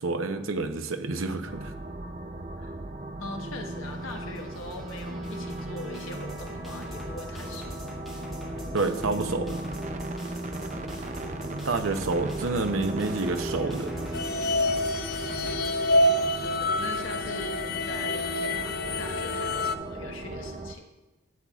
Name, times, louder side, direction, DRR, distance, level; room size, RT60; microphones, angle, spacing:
voice 1, 0.0-1.7 8.7-9.6 11.3-13.9, right 3 dB, 80° right, 7 dB, 0.8 m, -29 dB
sound 1, 1.5-20.7, right 2 dB, 35° right, 0.5 m, -37 dB
voice 2, 3.2-7.7 10.7-11.0 16.1-20.8, left 2 dB, 80° left, 2 dB, 1.3 m, -41 dB
sound 2, 3.8-15.8, equal, ahead, 2.6 m, -41 dB
sound 3, 14.1-19.8, left 1 dB, 45° left, 0.4 m, -27 dB
12.5 x 8.3 x 2.4 m, 1.1 s
head